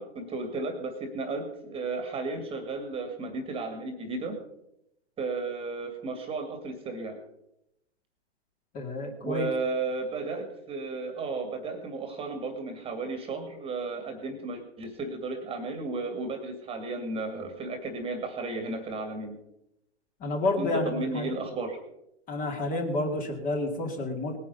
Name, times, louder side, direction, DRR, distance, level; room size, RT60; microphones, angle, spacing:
voice 1, 0.0-4.4 5.2-7.2 9.2-19.4 20.6-21.8, right 3 dB, 15° right, 7 dB, 2.2 m, -34 dB
voice 2, 8.7-9.5 20.2-21.3 22.3-24.4, left 2 dB, 25° left, 3 dB, 2.4 m, -30 dB
19.5 x 9.8 x 5.5 m, 0.82 s
hypercardioid pair, 125°, 35 cm